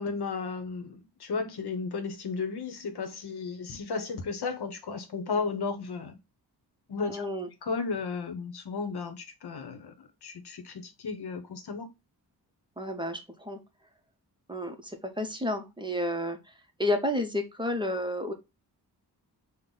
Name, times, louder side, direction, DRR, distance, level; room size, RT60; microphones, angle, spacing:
voice 1, 0.0-6.2 6.9-7.3 7.6-11.9, left 4 dB, 70° left, 0.9 m, -34 dB
voice 2, 7.1-7.5 12.8-13.6 14.5-16.5 16.8-18.3, left 1 dB, 10° right, 0.6 m, -31 dB
5.5 x 2.1 x 3.8 m
wide cardioid pair, 145°, 41 cm